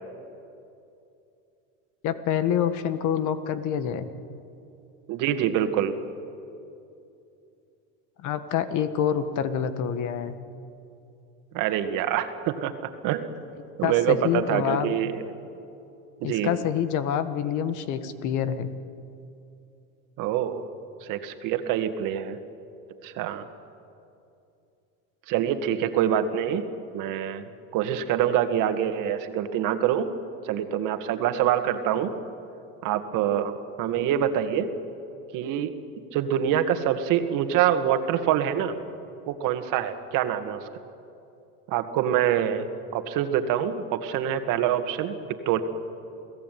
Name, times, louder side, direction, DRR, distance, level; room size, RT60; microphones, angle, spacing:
voice 1, 2.0-4.1 8.2-10.4 13.8-14.9 16.2-18.7, left 9 dB, 50° left, 11 dB, 1.7 m, -27 dB
voice 2, 5.1-5.9 11.5-13.3 13.8-15.2 16.2-16.5 20.2-20.6 21.0-22.4 23.0-23.5 25.3-26.7 26.9-27.5 27.7-30.1 30.4-32.1 32.8-34.7 35.3-35.8 36.1-38.8 39.3-40.7 41.7-42.7 42.9-45.2 45.5-45.6, right 10 dB, 55° right, 9 dB, 2.0 m, -25 dB
29.0 x 17.0 x 9.3 m, 2.7 s
supercardioid pair, 125°, 38 cm